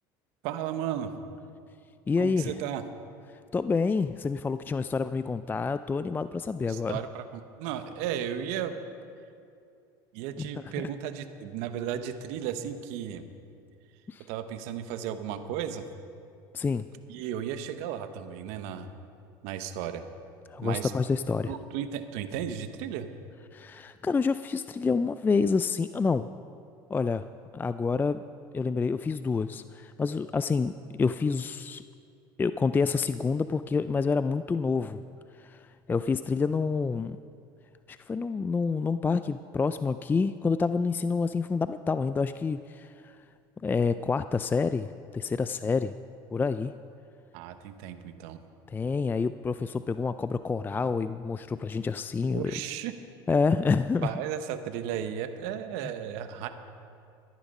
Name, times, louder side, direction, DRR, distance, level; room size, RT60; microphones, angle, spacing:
voice 1, 0.4-1.1 2.2-2.8 6.7-8.7 10.1-13.2 14.3-15.8 17.1-18.9 19.4-20.0 20.6-20.9 21.5-23.1 47.3-48.4 52.3-52.9 54.0-56.5, right 9 dB, 75° right, 9 dB, 1.0 m, -34 dB
voice 2, 2.1-2.5 3.5-7.0 10.4-10.9 14.1-14.3 16.5-16.9 20.5-21.5 23.5-26.3 26.9-27.3 27.5-28.2 28.5-31.8 32.4-35.0 35.4-37.2 37.9-43.2 43.6-45.9 46.3-46.7 48.7-52.5 53.3-54.1, left 4 dB, 15° left, 12 dB, 0.3 m, -28 dB
14.0 x 10.5 x 5.4 m, 2.4 s
supercardioid pair, 95°, 11 cm